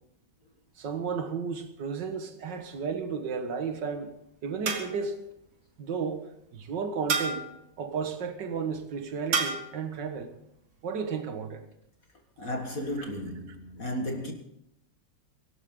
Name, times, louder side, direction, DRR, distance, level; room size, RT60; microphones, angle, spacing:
voice 1, 0.8-4.1 4.4-5.2 5.8-6.2 6.5-7.4 7.8-10.3 10.8-11.6 13.0-13.1, right 5 dB, 60° right, 2.1 m, -33 dB
sound 1, 2.5-3.0 4.7-5.2 7.1-7.6 9.3-9.8, right 4 dB, 80° right, 2.9 m, -31 dB
voice 2, 12.4-14.3, equal, 45° left, 2.1 m, -34 dB
23.0 x 12.5 x 3.8 m
omnidirectional pair, 2.2 m